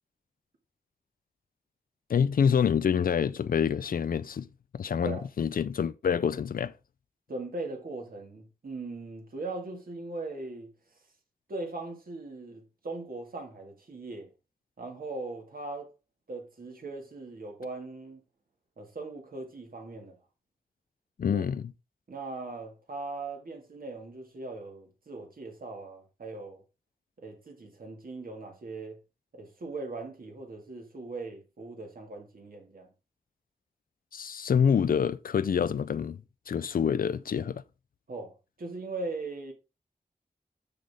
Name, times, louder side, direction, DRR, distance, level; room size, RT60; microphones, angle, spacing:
voice 1, 2.1-4.5 4.7-6.7 21.2-21.7 34.1-37.6, left 7 dB, 80° left, 0.4 m, -27 dB
voice 2, 7.3-10.7 11.5-14.3 14.8-15.9 16.3-18.2 18.8-20.2 21.3-21.4 22.1-26.6 27.2-29.0 29.3-32.9 38.1-39.5, right 3 dB, 80° right, 2.0 m, -39 dB
6.6 x 6.4 x 3.5 m
wide cardioid pair, 90°, 15 cm